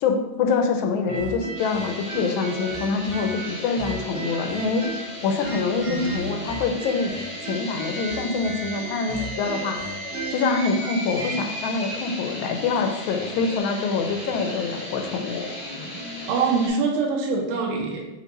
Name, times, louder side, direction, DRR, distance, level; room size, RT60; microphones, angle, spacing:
voice 1, 0.0-4.9 5.2-7.1 7.4-9.8 10.3-15.5, left 4 dB, 85° left, 4 dB, 1.4 m, -25 dB
sound 1, 1.1-5.1 5.4-11.4, right 2 dB, 60° right, 0.6 m, -35 dB
sound 2, 1.5-16.7, equal, 40° left, 0.7 m, -35 dB
voice 2, 16.3-18.0, right 4 dB, 80° right, 0 dB, 1.4 m, -23 dB
4.5 x 2.5 x 4.0 m, 1.1 s
omnidirectional pair, 2.2 m